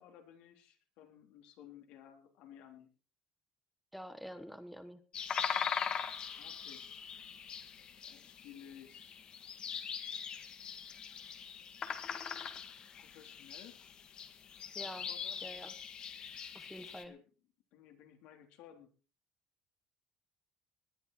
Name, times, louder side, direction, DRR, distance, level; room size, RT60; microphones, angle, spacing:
voice 1, 0.0-2.9 6.4-6.8 8.0-9.3 12.7-13.8 14.8-15.4 17.1-17.2 17.7-18.9, left 9 dB, 75° left, 5 dB, 3.6 m, -56 dB
voice 2, 3.9-5.0 14.7-15.1 15.4-15.7 16.5-17.1, equal, ahead, 10 dB, 1.3 m, -47 dB
sound 1, 5.1-17.0, left 7 dB, 40° left, 1.7 m, -41 dB
19.0 x 11.0 x 4.5 m, 0.36 s
cardioid pair, 125°, 2 cm